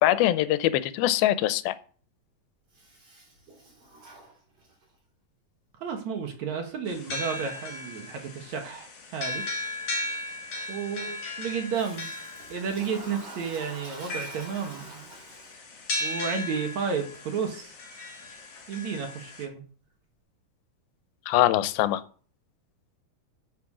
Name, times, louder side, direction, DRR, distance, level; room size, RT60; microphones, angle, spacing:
voice 1, 0.0-1.8 21.3-22.0, left 14 dB, 90° left, 14 dB, 2.5 m, -23 dB
Toilet flush, 2.7-5.0 11.7-15.9, right 2 dB, 40° right, 4.3 m, -47 dB
voice 2, 5.8-9.5 10.7-12.1 12.5-15.1 16.0-17.8 18.7-19.6, right 6 dB, 60° right, 4 dB, 2.4 m, -32 dB
sound 1, 6.9-19.4, left 2 dB, 45° left, 3.4 m, -37 dB
9.4 x 6.5 x 6.1 m, 0.42 s
omnidirectional pair, 4.3 m